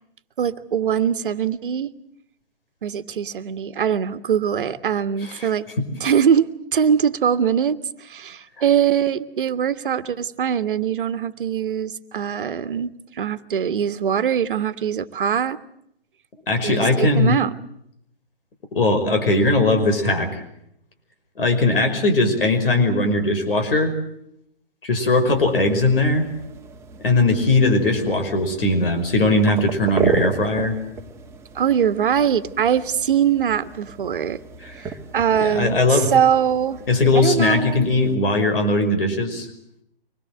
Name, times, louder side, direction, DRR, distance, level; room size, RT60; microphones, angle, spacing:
voice 1, 0.4-1.9 2.8-5.6 6.0-15.6 16.6-17.5 31.5-34.4 34.8-36.8 37.1-37.9, right 8 dB, 60° right, 12 dB, 1.5 m, -22 dB
voice 2, 16.5-17.4 18.7-20.4 21.4-23.9 24.8-26.2 27.0-30.8 34.6-34.7 35.4-36.1 36.9-39.5, left 2 dB, 65° left, 7 dB, 5.5 m, -19 dB
sound 1, 25.3-38.1, right 6 dB, 10° right, 1.8 m, -33 dB
25.0 x 21.0 x 7.8 m, 0.76 s
figure-of-eight pair, 130°, 30 cm